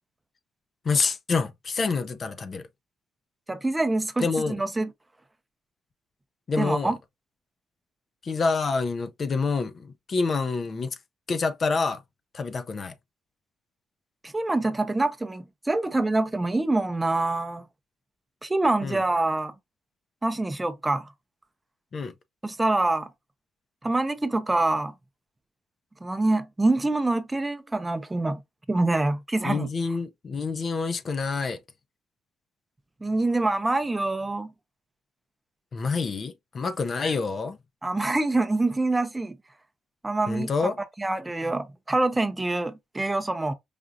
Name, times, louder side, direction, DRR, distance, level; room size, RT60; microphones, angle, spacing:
voice 1, 0.8-2.7 4.2-4.6 6.5-6.9 8.2-11.0 11.3-12.0 12.3-12.9 18.8-19.0 21.9-22.1 29.4-31.6 35.7-37.6 40.3-40.8, left 4 dB, 45° left, 0.5 m, -27 dB
voice 2, 3.5-4.9 6.6-7.0 14.2-17.6 18.4-19.5 20.2-21.1 22.4-23.1 23.8-24.9 26.0-28.4 28.7-29.7 33.0-34.5 37.8-39.4 40.0-40.5 41.0-43.5, right 2 dB, 15° right, 0.5 m, -25 dB
4.9 x 2.3 x 2.6 m
cardioid pair, 90°, 0 cm